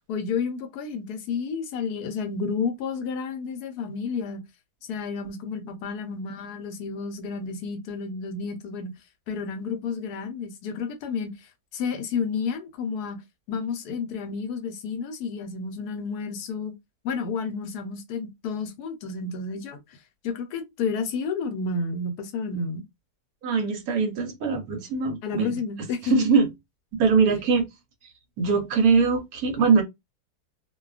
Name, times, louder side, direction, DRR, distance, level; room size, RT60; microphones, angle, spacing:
voice 1, 0.1-4.4 4.9-8.9 9.3-13.2 13.5-16.7 17.0-20.0 20.2-22.8 25.2-26.1, left 5 dB, 75° left, 1.1 m, -31 dB
voice 2, 23.4-25.6 26.0-26.5 27.0-27.7 28.4-29.8, right 5 dB, 70° right, 1.1 m, -22 dB
2.7 x 2.2 x 2.3 m
omnidirectional pair, 1.7 m